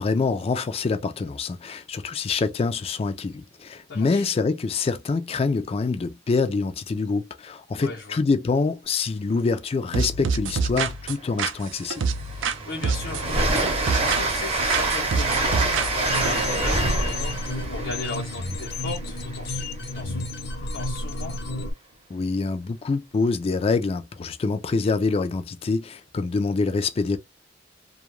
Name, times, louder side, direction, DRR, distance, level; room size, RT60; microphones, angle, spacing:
voice 1, 0.0-12.0 22.1-27.2, left 4 dB, 30° left, 0.3 m, -25 dB
voice 2, 3.9-4.2 7.8-8.2 12.3-20.2 20.6-21.3, left 3 dB, 90° left, 0.8 m, -37 dB
sound 1, 9.9-12.6 12.8-14.4 14.7-16.3, right 5 dB, 75° right, 0.4 m, -27 dB
Train, 11.2-11.3 11.7-19.4, right 2 dB, 30° right, 0.7 m, -26 dB
sound 2, 16.0-21.7, left 2 dB, 55° left, 0.7 m, -31 dB
2.3 x 2.2 x 3.0 m
head